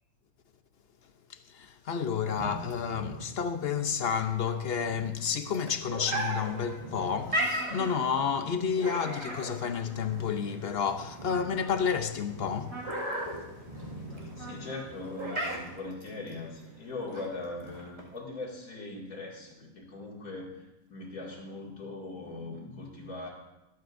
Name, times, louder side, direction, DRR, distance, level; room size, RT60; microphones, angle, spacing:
voice 1, 1.3-12.8, left 7 dB, 55° left, 0.8 m, -30 dB
sound 1, 2.2-18.2, right 1 dB, 30° right, 2.2 m, -38 dB
sound 2, 6.1-15.8, right 1 dB, 75° right, 4.2 m, -47 dB
voice 2, 14.4-20.6 20.9-23.3, left 2 dB, 80° left, 2.9 m, -40 dB
23.5 x 8.5 x 2.6 m
omnidirectional pair, 1.5 m